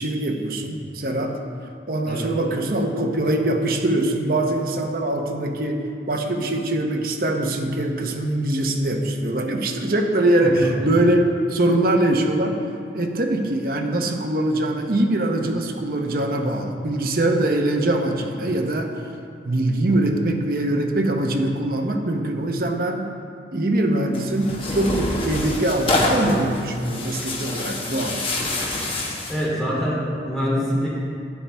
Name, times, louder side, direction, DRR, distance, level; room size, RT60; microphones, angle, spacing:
voice 1, 0.0-1.4 1.9-12.6 12.9-18.9 19.4-23.1 23.5-28.2, right 1 dB, 55° right, 3 dB, 0.9 m, -22 dB
Tearing, 24.1-29.5, left 2 dB, 30° left, 1.3 m, -26 dB
voice 2, 29.3-30.9, equal, ahead, -8 dB, 2.8 m, -24 dB
11.5 x 8.9 x 3.4 m, 2.3 s
head